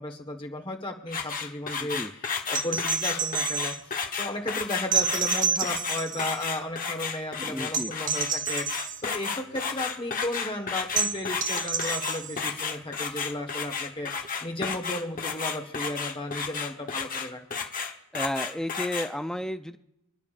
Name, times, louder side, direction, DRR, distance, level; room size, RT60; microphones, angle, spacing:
voice 1, 0.0-3.9 4.2-17.6, left 1 dB, 25° left, 3 dB, 1.3 m, -34 dB
sound 1, 1.1-19.1, left 5 dB, 40° left, 1.1 m, -32 dB
voice 2, 1.8-2.1 7.4-7.9 18.1-19.8, left 1 dB, 5° left, 8 dB, 0.4 m, -32 dB
sound 2, 2.5-3.8 4.9-6.4 7.7-9.0 11.0-12.4 14.2-14.3, right 6 dB, 35° right, 0.9 m, -29 dB
29.0 x 10.5 x 2.5 m, 0.86 s
head